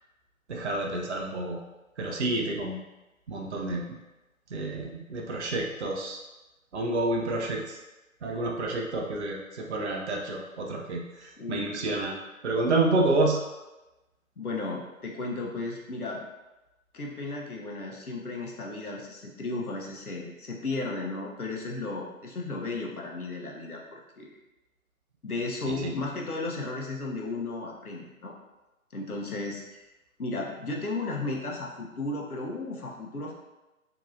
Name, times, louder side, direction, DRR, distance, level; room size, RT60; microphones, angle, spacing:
voice 1, 0.5-1.6 2.0-2.8 3.3-4.0 4.5-6.2 6.7-7.8 8.2-12.2 12.4-13.4 25.6-25.9, right 2 dB, 50° right, 0 dB, 0.6 m, -29 dB
voice 2, 11.4-12.1 14.4-16.2 16.9-24.3 25.2-28.3 28.9-29.8 30.2-33.3, left 2 dB, 85° left, -1 dB, 0.9 m, -34 dB
3.8 x 2.8 x 2.5 m, 1.0 s
figure-of-eight pair, 145°, 43 cm